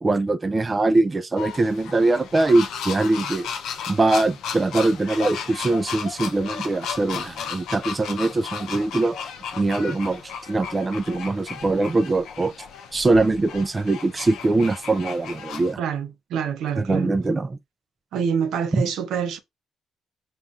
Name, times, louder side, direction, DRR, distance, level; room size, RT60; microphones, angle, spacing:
voice 1, 0.0-3.5 3.9-9.2 9.5-12.5 12.9-15.8 16.8-17.6 18.7-18.8, right 2 dB, 25° right, 0.3 m, -22 dB
sound 1, 1.4-15.7, left 7 dB, 80° left, 0.5 m, -35 dB
voice 2, 15.8-17.1 18.1-19.4, right 7 dB, 80° right, 0.5 m, -26 dB
5.3 x 2.4 x 2.4 m
cardioid pair, 90°, 0 cm